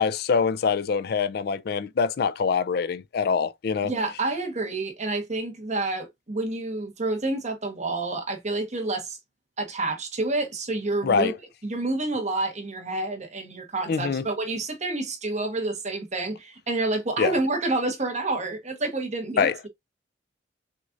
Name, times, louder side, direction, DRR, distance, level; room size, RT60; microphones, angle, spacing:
voice 1, 0.0-3.9 11.0-11.3 13.9-14.3 17.2-17.4 19.4-19.5, left 5 dB, 60° left, 0.4 m, -24 dB
voice 2, 3.8-9.2 9.6-11.3 11.6-19.7, right 2 dB, 40° right, 1.2 m, -28 dB
6.3 x 2.5 x 2.5 m
head